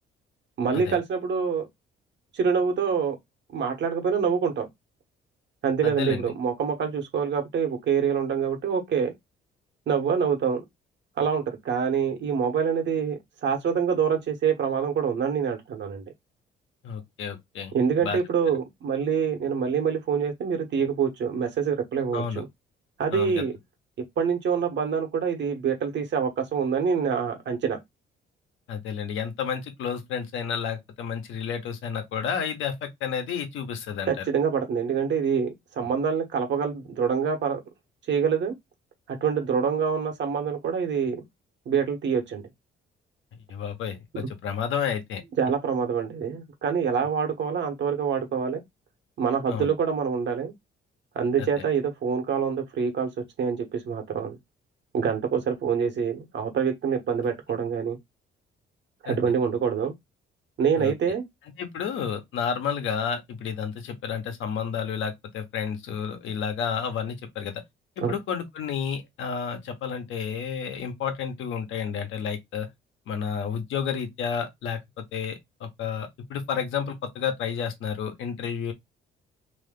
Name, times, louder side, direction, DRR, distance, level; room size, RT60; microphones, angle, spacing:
voice 1, 0.6-1.7 2.3-3.2 3.5-4.7 5.6-9.1 9.9-10.6 11.2-16.0 17.7-22.5 23.0-23.5 24.2-27.8 34.1-37.6 38.1-38.5 39.1-41.2 41.7-42.5 45.4-48.6 49.2-50.5 51.1-53.1 53.4-54.4 54.9-58.0 59.0-59.9 60.6-61.2 68.0-68.1, right 6 dB, 65° right, 1.2 m, -26 dB
voice 2, 5.8-6.3 16.8-17.7 18.0-18.2 22.1-22.4 23.1-23.4 28.7-34.2 43.5-45.2 49.5-49.7 51.4-51.7 59.0-59.2 60.8-60.9 61.6-67.6 68.0-72.7 73.1-78.7, left 7 dB, 85° left, 1.1 m, -31 dB
3.0 x 2.7 x 3.6 m
cardioid pair, 90°, 20 cm